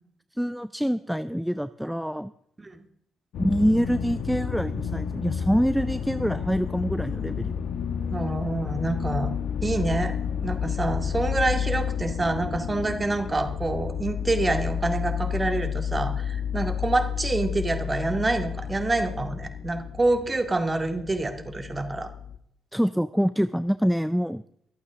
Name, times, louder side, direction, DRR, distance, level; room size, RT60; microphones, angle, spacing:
voice 1, 0.4-2.3 3.4-7.6 22.7-24.4, equal, ahead, 13 dB, 0.4 m, -25 dB
sound 1, 3.3-22.4, left 7 dB, 75° left, 1.1 m, -31 dB
voice 2, 8.1-9.3 9.6-10.1 10.4-22.1, right 2 dB, 20° right, 6 dB, 2.0 m, -27 dB
24.0 x 8.6 x 3.7 m, 0.70 s
cardioid pair, 90°, 0 cm